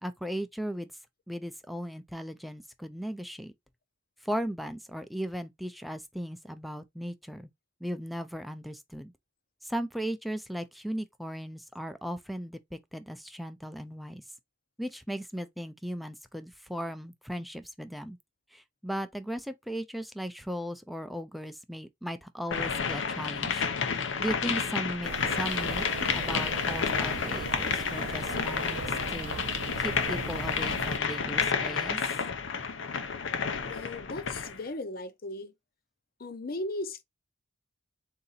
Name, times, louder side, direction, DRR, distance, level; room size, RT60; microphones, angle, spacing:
voice 1, 0.0-0.9 1.3-3.5 4.2-7.5 7.8-9.1 9.6-14.2 14.8-18.2 18.5-23.7 24.2-25.1 25.4-25.9 26.1-29.4 29.8-32.0, equal, ahead, 0.4 m, -37 dB
sound 1, 22.5-34.6, left 6 dB, 90° left, 0.7 m, -30 dB
sound 2, 25.0-31.0, right 5 dB, 85° right, 0.4 m, -39 dB
voice 2, 33.6-35.5 36.2-37.0, left 2 dB, 50° left, 0.7 m, -37 dB
3.8 x 2.8 x 4.0 m
head